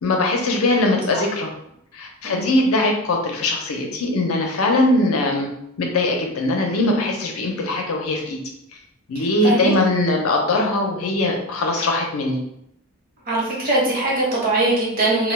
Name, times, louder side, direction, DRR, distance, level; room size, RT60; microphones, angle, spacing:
voice 1, 0.0-1.5 1.9-5.5 5.8-8.4 9.1-12.4, left 2 dB, 75° left, 2 dB, 0.5 m, -21 dB
voice 2, 9.4-9.7 13.3-15.3, right 2 dB, 45° right, -5 dB, 1.0 m, -21 dB
2.2 x 2.2 x 3.2 m, 0.76 s
head